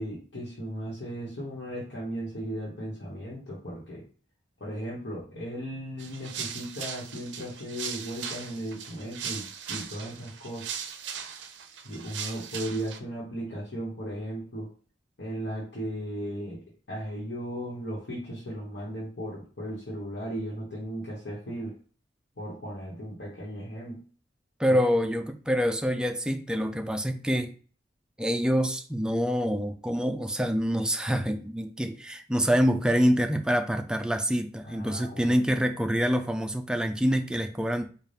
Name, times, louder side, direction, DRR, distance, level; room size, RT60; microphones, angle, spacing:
voice 1, 0.0-4.0 4.6-10.7 11.8-14.7 15.2-16.6 16.9-21.7 22.4-24.0 24.7-24.8 34.6-35.4, equal, 70° left, 1.2 m, -36 dB
sound 1, 6.0-13.0, right 7 dB, 75° right, 0.5 m, -39 dB
voice 2, 24.6-27.5 28.2-37.9, equal, 5° right, 0.3 m, -26 dB
4.0 x 2.4 x 3.3 m
head